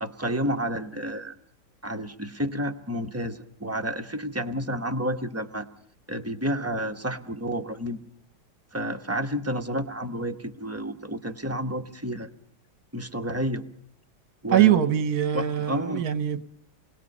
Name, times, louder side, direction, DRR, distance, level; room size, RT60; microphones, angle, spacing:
voice 1, 0.0-1.3 1.8-5.7 6.1-8.0 8.7-12.3 12.9-13.6 14.4-14.9 15.3-16.1, equal, 10° right, 4 dB, 0.9 m, -30 dB
voice 2, 14.5-16.4, right 11 dB, 60° right, 12 dB, 1.5 m, -22 dB
28.5 x 21.0 x 5.5 m, 0.67 s
omnidirectional pair, 1.9 m